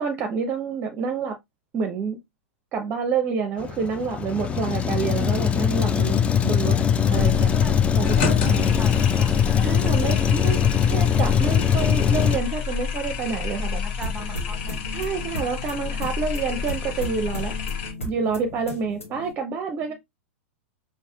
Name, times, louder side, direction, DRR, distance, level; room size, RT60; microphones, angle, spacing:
voice 1, 0.0-1.4 1.7-2.2 2.7-6.8 7.1-7.5 8.0-8.7 9.6-13.8 14.9-17.5 18.0-19.9, right 5 dB, 30° right, 0.6 m, -28 dB
Truck, 3.6-12.4, left 8 dB, 15° left, 0.3 m, -21 dB
sound 1, 7.1-17.9, left 5 dB, 45° left, 0.9 m, -30 dB
voice 2, 7.5-9.4 13.2-13.4 13.7-14.8 19.8-19.9, right 1 dB, ahead, 1.4 m, -40 dB
sound 2, 14.0-19.3, left 1 dB, 80° left, 1.0 m, -36 dB
5.5 x 2.5 x 2.3 m
figure-of-eight pair, 100°, 7 cm